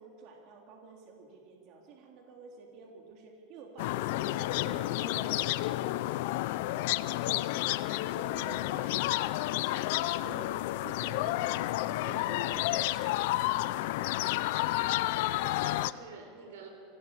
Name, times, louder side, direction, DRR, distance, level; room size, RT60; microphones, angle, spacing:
voice 1, 0.0-6.0 6.6-7.1 7.9-13.6, right 4 dB, 50° right, 1 dB, 3.4 m, -49 dB
sound 1, 3.8-15.9, left 16 dB, 70° left, 0.6 m, -31 dB
voice 2, 14.5-16.7, right 4 dB, 90° right, 4 dB, 4.6 m, -49 dB
25.5 x 17.0 x 7.5 m, 2.4 s
supercardioid pair, 135°, 0 cm